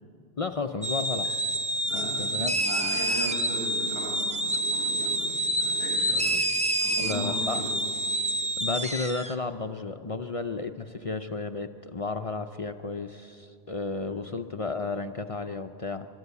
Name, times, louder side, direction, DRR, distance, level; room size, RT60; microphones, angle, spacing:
voice 1, 0.4-1.3 1.9-2.6 6.3-6.4 7.0-7.6 8.6-16.1, left 3 dB, 40° left, 7 dB, 0.6 m, -33 dB
sound 1, 0.8-9.3, right 1 dB, 10° right, 0.6 m, -28 dB
voice 2, 1.9-6.5 6.8-7.7 14.1-14.2, equal, 80° right, -2 dB, 5.4 m, -38 dB
29.5 x 13.0 x 8.2 m, 2.6 s
omnidirectional pair, 1.0 m